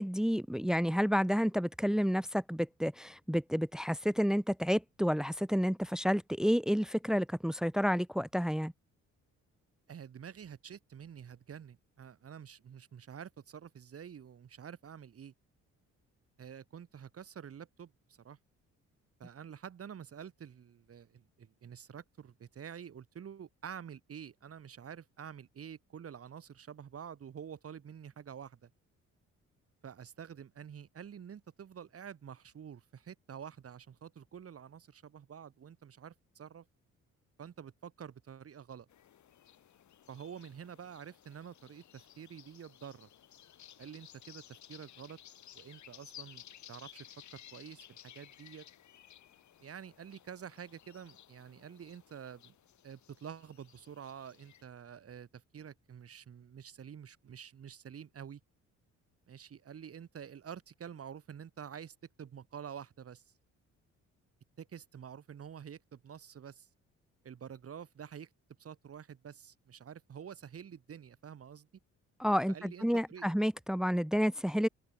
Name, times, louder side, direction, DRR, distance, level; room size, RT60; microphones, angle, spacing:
voice 1, 0.0-8.7 72.2-74.7, equal, ahead, 1.2 m, -30 dB
voice 2, 9.9-15.3 16.4-18.4 19.2-28.7 29.8-36.6 37.4-38.9 40.1-43.1 43.8-45.2 45.5-48.7 49.6-52.5 52.8-58.4 59.3-63.2 64.6-66.7 67.2-68.3 68.6-71.7 72.5-73.3, right 8 dB, 50° right, 3.0 m, -48 dB
sound 1, 38.9-54.6, left 11 dB, 70° left, 6.8 m, -57 dB
open air
cardioid pair, 90°, 30 cm